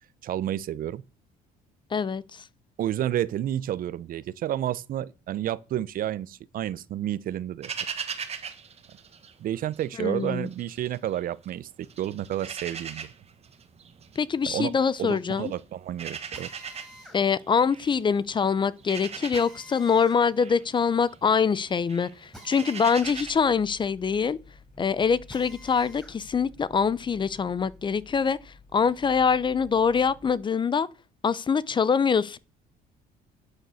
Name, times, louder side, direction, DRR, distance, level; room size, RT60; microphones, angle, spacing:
voice 1, 0.2-1.0 2.8-7.7 9.4-13.1 14.4-14.7 15.0-16.5, right 12 dB, 60° right, 0.6 m, -30 dB
voice 2, 1.9-2.4 10.0-10.5 14.2-15.5 17.1-24.4 24.8-30.9 31.2-32.4, left 6 dB, 30° left, 0.6 m, -24 dB
sound 1, 7.6-9.9 10.2-11.5 11.8-23.3, right 7 dB, 40° right, 1.4 m, -40 dB
Drill, 16.3-26.2 26.6-28.2, equal, 5° left, 4.9 m, -51 dB
sound 2, 22.9-30.3, left 3 dB, 45° left, 5.2 m, -51 dB
11.5 x 6.7 x 6.3 m
cardioid pair, 110°, 17 cm